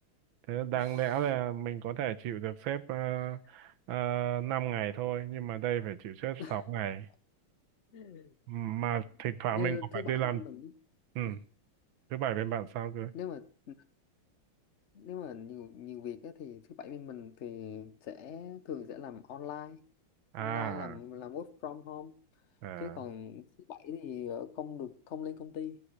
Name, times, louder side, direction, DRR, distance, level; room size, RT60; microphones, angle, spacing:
voice 1, 0.5-7.1 8.5-10.4 11.1-11.4 12.1-13.1 20.3-21.0 22.6-23.0, right 11 dB, 75° right, 1.5 m, -33 dB
voice 2, 7.9-8.3 9.5-10.7 11.2-11.4 13.1-13.7 14.9-19.8 20.4-22.2 22.8-25.8, left 9 dB, 60° left, 0.7 m, -42 dB
14.5 x 14.0 x 3.2 m
omnidirectional pair, 2.3 m